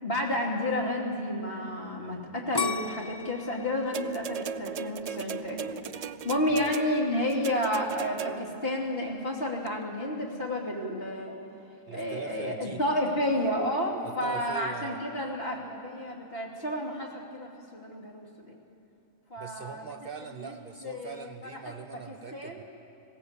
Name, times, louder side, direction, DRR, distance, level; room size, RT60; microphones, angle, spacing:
voice 1, 0.0-11.3 11.9-18.6 19.3-19.8 20.4-20.5 20.8-21.3 21.9-22.6, left 1 dB, 50° left, -1 dB, 2.9 m, -31 dB
sound 1, 2.5-5.5 6.0-6.5, left 4 dB, 30° left, 0.4 m, -35 dB
sound 2, 3.9-8.7 9.7-9.8, right 7 dB, 75° right, 0.3 m, -37 dB
voice 2, 11.9-12.8 14.0-15.0 19.4-22.6, right 6 dB, 55° right, 6 dB, 0.8 m, -42 dB
20.5 x 17.0 x 8.2 m, 2.9 s
omnidirectional pair, 1.3 m